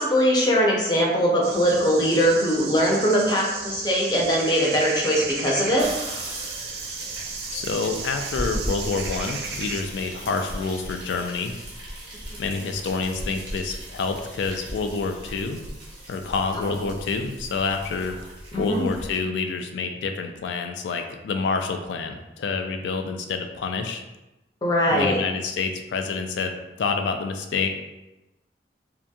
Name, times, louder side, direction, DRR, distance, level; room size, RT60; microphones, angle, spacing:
voice 1, 0.0-5.9 18.5-18.8 24.6-25.2, equal, 25° left, -3 dB, 0.5 m, -21 dB
sound 1, 1.4-9.8, right 5 dB, 60° right, 0.3 m, -35 dB
sound 2, 5.8-19.2, equal, 25° right, 0.7 m, -37 dB
voice 2, 7.5-11.5 12.4-15.6 16.1-18.2 18.6-24.0 24.9-27.7, left 4 dB, 90° left, 5 dB, 0.3 m, -28 dB
2.8 x 2.5 x 2.3 m, 1.0 s
head